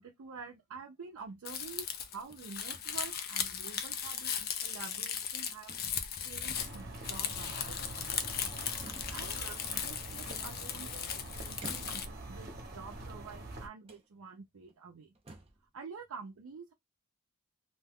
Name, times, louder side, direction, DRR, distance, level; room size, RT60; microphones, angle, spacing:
voice 1, 0.0-5.7 6.2-8.7 9.1-15.1 15.6-16.7, right 5 dB, 90° right, 0.5 m, -48 dB
sound 1, 1.1-1.5 2.3-3.0 3.8-4.0 4.4-4.6 5.1-5.4 5.7-6.4 7.4-8.2 8.5-9.3 10.3-11.1 11.6-12.2 12.8-13.5 13.8-14.1 14.7-14.8 15.1-15.7, right 2 dB, 25° right, 0.5 m, -53 dB
Crumpling crinkling, 1.4-12.0, left 8 dB, 45° left, 0.4 m, -37 dB
sound 2, 6.5-13.7, right 2 dB, 45° right, 0.9 m, -45 dB
2.6 x 2.2 x 3.5 m
head